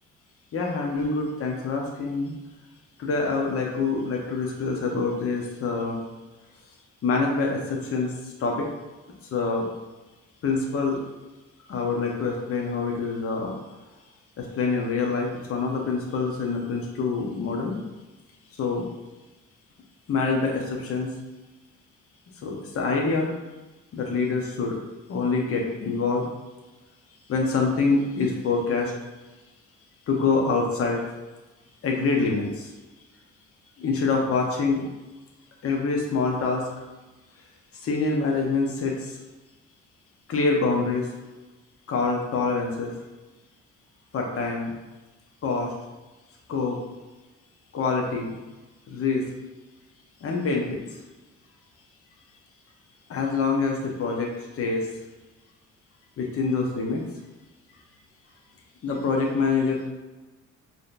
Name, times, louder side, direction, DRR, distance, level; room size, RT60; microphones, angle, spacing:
voice 1, 0.5-2.3 3.0-6.0 7.0-8.7 9.3-9.7 10.4-11.0 11.7-13.5 14.4-17.8 18.6-18.9 20.1-21.1 22.4-23.3 23.9-24.8 25.1-26.3 27.3-28.9 30.1-31.0 31.8-32.7 33.8-34.8 35.6-36.7 37.7-39.2 40.3-41.1 41.9-42.9 44.1-44.7 45.4-45.7 46.5-46.8 47.7-48.4 48.9-49.2 50.2-51.0 53.1-54.9 56.2-57.0 58.8-59.9, left 4 dB, 50° left, 0 dB, 0.8 m, -26 dB
4.8 x 2.8 x 2.5 m, 1.1 s
cardioid pair, 90°, 30 cm